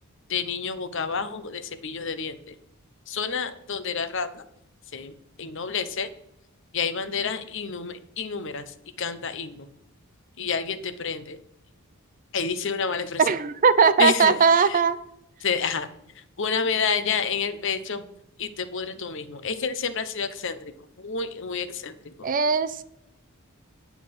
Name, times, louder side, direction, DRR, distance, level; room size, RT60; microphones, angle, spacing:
voice 1, 0.3-2.5 3.1-4.4 4.9-6.1 6.7-9.7 10.4-11.4 12.3-13.2 14.0-14.8 15.4-15.9 16.4-18.0 18.4-20.6 21.0-22.3, left 5 dB, 55° left, 11 dB, 0.8 m, -29 dB
voice 2, 13.2-15.0 22.2-22.8, right 5 dB, 40° right, 14 dB, 0.5 m, -19 dB
9.5 x 5.8 x 5.8 m, 0.79 s
head